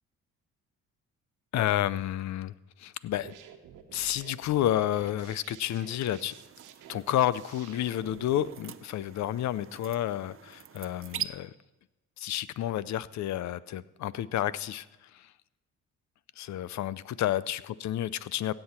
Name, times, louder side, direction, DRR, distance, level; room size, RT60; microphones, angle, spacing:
voice 1, 1.5-2.5 2.8-3.3 3.9-6.3 6.9-11.5 12.2-14.9 15.1-15.3 16.4-18.5, left 12 dB, 65° left, 18 dB, 0.6 m, -30 dB
sound 1, 3.0-8.5, right 9 dB, 90° right, 1.2 m, -49 dB
sound 2, 6.2-11.3, right 10 dB, 45° right, 0.6 m, -43 dB
16.5 x 7.9 x 4.3 m, 1.1 s
cardioid pair, 90°, 30 cm